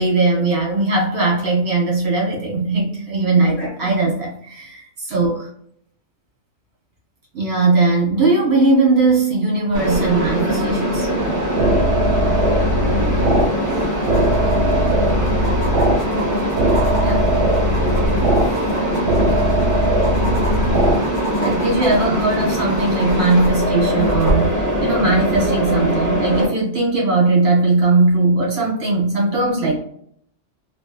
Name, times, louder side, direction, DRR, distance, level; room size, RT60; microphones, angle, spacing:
voice 1, 0.0-5.5 7.3-11.1 17.0-17.3 18.4-18.6 21.4-29.8, right 3 dB, 65° right, -3 dB, 1.5 m, -19 dB
voice 2, 3.3-4.1 12.7-13.9, left 2 dB, 40° left, -2 dB, 0.6 m, -36 dB
Mechanisms, 9.7-26.5, equal, 20° right, 0.7 m, -21 dB
sound 1, 11.2-21.0, right 1 dB, 80° right, 1.0 m, -19 dB
sound 2, 14.0-24.3 26.0-26.1, right 1 dB, 50° right, 1.2 m, -33 dB
3.5 x 2.0 x 2.3 m, 0.66 s
omnidirectional pair, 1.2 m